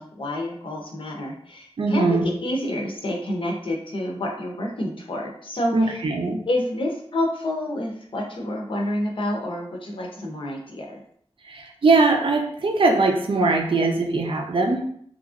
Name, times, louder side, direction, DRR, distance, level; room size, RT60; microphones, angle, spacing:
voice 1, 0.0-6.0 6.5-11.0, left 1 dB, 50° left, 0 dB, 0.6 m, -28 dB
voice 2, 1.8-2.2 5.7-6.4 11.5-14.8, right 3 dB, 55° right, 2 dB, 0.5 m, -21 dB
2.9 x 2.5 x 2.4 m, 0.63 s
wide cardioid pair, 95°, 11 cm